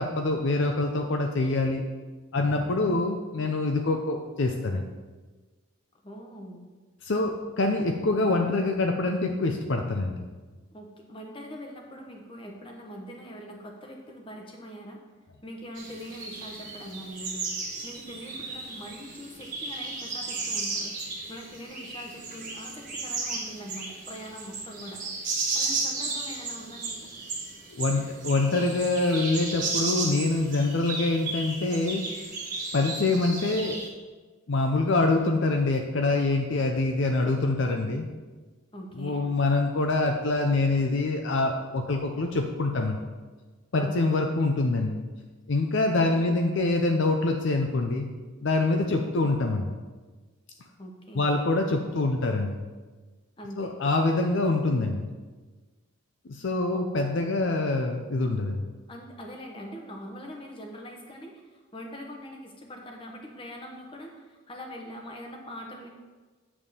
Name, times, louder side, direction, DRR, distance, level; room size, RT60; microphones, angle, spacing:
voice 1, 0.0-1.8 2.3-4.9 7.0-10.2 27.7-32.0 32.7-33.8 34.5-38.1 39.0-43.0 43.7-45.0 45.5-48.1 48.4-49.7 51.2-52.6 53.6-55.1 56.3-58.7, left 2 dB, 55° left, 3 dB, 0.5 m, -25 dB
voice 2, 6.0-6.7 10.7-15.0 15.4-20.9 21.3-25.0 25.5-27.1 38.7-39.3 43.8-44.3 46.1-46.4 50.8-51.3 53.4-53.7 56.7-56.9 57.2-57.3 58.9-65.9, equal, 25° left, 1 dB, 1.0 m, -42 dB
sound 1, 15.7-33.9, right 3 dB, 40° right, 1.6 m, -34 dB
8.5 x 3.7 x 6.6 m, 1.3 s
head